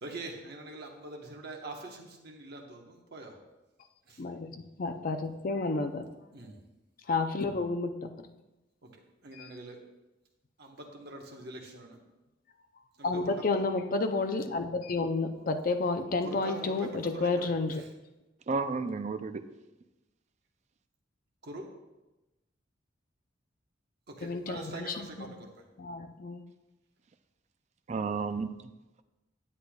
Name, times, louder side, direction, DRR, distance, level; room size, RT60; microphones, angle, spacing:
voice 1, 0.0-3.3 4.1-4.2 6.3-6.6 8.8-8.9 9.2-9.8 10.6-12.0 13.0-13.2 16.2-17.5 17.8-17.9 21.4-21.7 24.2-25.5, right 2 dB, 55° right, 1 dB, 1.2 m, -43 dB
voice 2, 4.2-6.1 7.1-8.1 9.4-9.5 13.0-17.8 24.2-25.4 25.8-26.4, left 3 dB, 45° left, 6 dB, 0.5 m, -31 dB
voice 3, 18.5-19.4 27.9-28.6, right 4 dB, 40° right, 10 dB, 0.4 m, -32 dB
9.9 x 8.1 x 2.3 m, 1.0 s
head